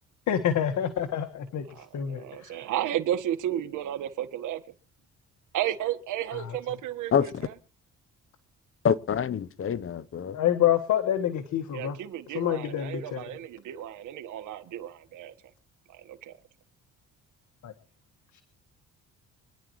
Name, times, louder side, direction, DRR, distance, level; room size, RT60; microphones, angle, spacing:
voice 1, 0.3-2.6 6.3-6.6 10.3-12.0 12.3-13.2 17.6-17.7, left 10 dB, 70° left, 1.7 m, -27 dB
voice 2, 1.8-4.6 5.5-7.1 11.7-15.3 16.3-16.4, right 12 dB, 80° right, 1.6 m, -32 dB
voice 3, 7.1-7.5 8.8-10.4, left 7 dB, 45° left, 0.9 m, -26 dB
26.5 x 10.5 x 3.2 m
cardioid pair, 90°, 30 cm